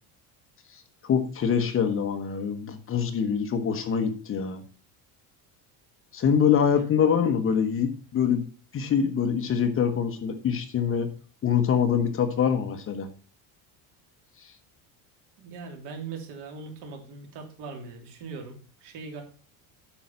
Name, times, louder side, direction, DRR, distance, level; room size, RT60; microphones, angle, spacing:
voice 1, 1.0-4.6 6.1-8.4 8.7-11.1 11.4-13.1, left 7 dB, 30° left, 7 dB, 1.1 m, -24 dB
voice 2, 15.4-19.2, right 4 dB, 65° right, 4 dB, 3.1 m, -40 dB
8.8 x 6.4 x 5.7 m, 0.38 s
cardioid pair, 160°, 43 cm